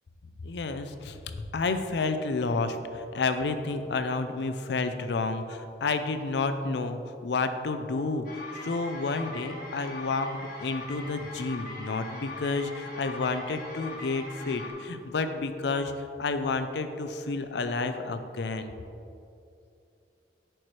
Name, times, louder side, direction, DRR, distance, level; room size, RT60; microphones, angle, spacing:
voice 1, 0.4-15.9 16.2-18.7, left 3 dB, 70° left, 9 dB, 0.5 m, -30 dB
sound 1, 8.2-14.7, left 2 dB, 50° left, 1.4 m, -41 dB
11.0 x 4.5 x 3.2 m, 2.6 s
head